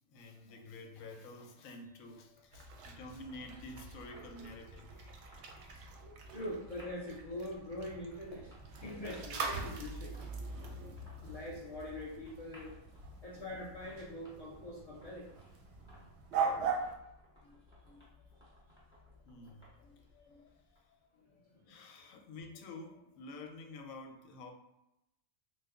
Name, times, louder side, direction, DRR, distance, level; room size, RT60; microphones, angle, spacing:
voice 1, 0.1-5.2 10.9-11.0 13.3-13.4 17.4-18.4 19.2-24.5, left 2 dB, 90° left, 4 dB, 1.0 m, -51 dB
sound 1, 2.0-21.0, left 1 dB, 5° right, 1.1 m, -62 dB
sound 2, 2.5-16.9, right 5 dB, 65° right, 0.8 m, -42 dB
voice 2, 6.3-8.5 8.8-10.2 11.2-12.8 13.2-15.3 21.2-21.8, left 1 dB, 60° left, -4 dB, 0.4 m, -43 dB
3.0 x 2.1 x 3.5 m, 0.87 s
omnidirectional pair, 1.4 m